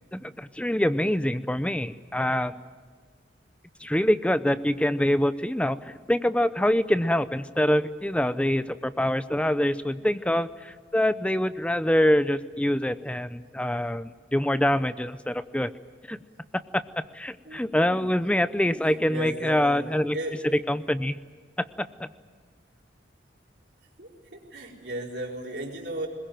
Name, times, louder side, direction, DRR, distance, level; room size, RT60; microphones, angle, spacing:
voice 1, 0.1-2.6 3.8-15.7 16.1-16.2 16.7-16.8 17.1-20.2 20.4-21.2 21.8-22.1, left 1 dB, 5° left, 13 dB, 0.6 m, -25 dB
voice 2, 18.4-19.8 20.1-20.4 24.0-26.1, right 1 dB, 60° right, -1 dB, 4.5 m, -36 dB
21.5 x 21.5 x 9.2 m, 1.5 s
head